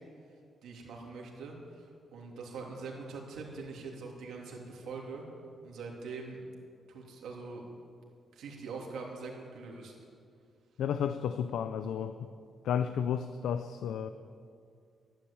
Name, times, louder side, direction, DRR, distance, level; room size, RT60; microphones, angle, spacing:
voice 1, 0.6-5.2 5.6-6.4 6.9-7.6 8.3-9.9, right 4 dB, 85° right, -1 dB, 3.3 m, -43 dB
voice 2, 10.8-12.3 12.6-14.1, left 8 dB, 85° left, 10 dB, 0.5 m, -32 dB
13.5 x 12.0 x 8.6 m, 2.3 s
wide cardioid pair, 180°, 0 cm